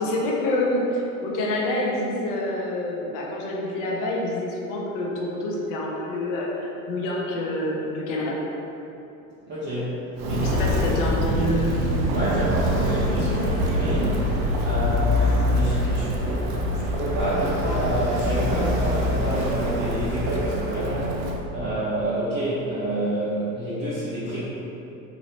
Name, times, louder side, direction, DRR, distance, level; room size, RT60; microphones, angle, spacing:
voice 1, 0.0-8.4 10.4-11.9, left 1 dB, 50° left, -2 dB, 0.7 m, -27 dB
voice 2, 9.5-9.9 10.2-10.9 12.1-14.2 14.6-21.2 21.5-24.4, right 1 dB, 25° right, -12 dB, 0.9 m, -28 dB
Walk footsteps, 10.2-21.4, equal, 70° right, 0.6 m, -24 dB
3.0 x 2.8 x 2.8 m, 2.9 s
hypercardioid pair, 85°, 42 cm